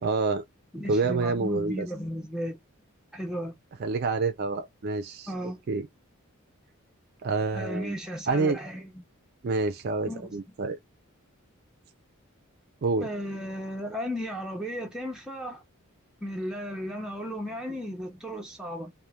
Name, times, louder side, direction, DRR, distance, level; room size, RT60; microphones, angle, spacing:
voice 1, 0.0-0.4 0.9-1.9 3.8-5.3 5.7-5.9 7.2-8.0 8.3-8.6 9.4-10.8 12.8-13.1, right 3 dB, 45° right, 0.4 m, -27 dB
voice 2, 0.7-2.6 3.1-3.5 5.3-5.6 7.5-8.9 10.1-10.5 13.0-15.6 16.2-18.9, equal, 5° right, 0.7 m, -35 dB
3.0 x 2.1 x 2.3 m
head